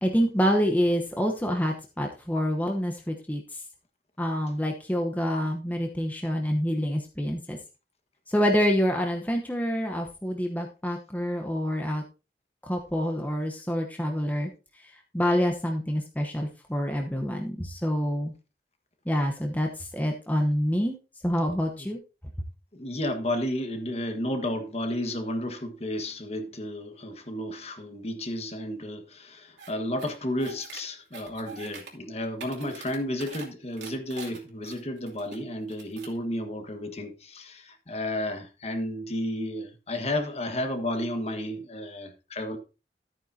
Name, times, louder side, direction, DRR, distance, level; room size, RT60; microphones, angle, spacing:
voice 1, 0.0-3.6 4.2-7.6 8.3-12.0 12.6-14.5 14.8-14.9 15.1-18.3 19.1-21.0 21.2-22.0, equal, 10° left, 0.9 m, -27 dB
voice 2, 22.7-42.6, left 1 dB, 35° left, 1.5 m, -32 dB
sound 1, 29.6-29.7 30.0-30.8 31.1-31.9 32.2-33.5 33.8-35.4 35.7-36.2, right 5 dB, 80° right, 2.8 m, -44 dB
13.0 x 9.1 x 2.8 m
head